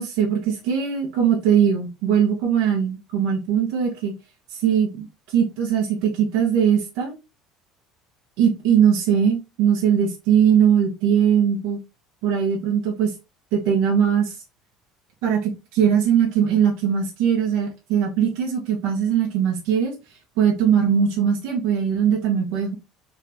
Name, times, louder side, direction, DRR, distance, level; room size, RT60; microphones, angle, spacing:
voice 1, 0.0-4.1 4.5-5.1 5.3-7.1 8.4-11.8 12.2-13.1 13.5-14.3 15.2-19.9 20.4-22.7, right 8 dB, 75° right, -2 dB, 1.2 m, -20 dB
3.7 x 3.0 x 3.5 m, 0.27 s
cardioid pair, 170°, 0 cm